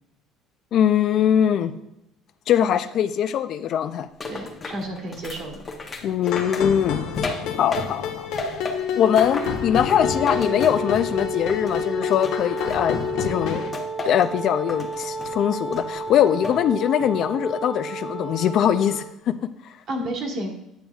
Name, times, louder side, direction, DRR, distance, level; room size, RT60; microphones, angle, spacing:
voice 1, 0.7-1.7 2.5-4.1 6.0-7.0 7.6-8.3 8.9-13.6 14.0-19.3 19.6-19.7, left 9 dB, 45° left, 11 dB, 0.3 m, -22 dB
sound 1, 4.2-8.1 8.4-11.2 11.5-13.1 13.7-14.3 14.7-15.3 15.7-16.6 17.0-17.4, left 2 dB, 20° left, 0.8 m, -34 dB
voice 2, 4.3-6.0 9.4-9.5 19.9-20.5, right 1 dB, 45° right, 2 dB, 1.4 m, -32 dB
sound 2, 6.2-13.7, left 8 dB, 65° left, 0.8 m, -28 dB
Wind instrument woodwind instrument, 9.9-19.1, right 4 dB, ahead, 1.2 m, -33 dB
8.8 x 6.9 x 2.3 m, 0.87 s
cardioid pair, 160°, 0 cm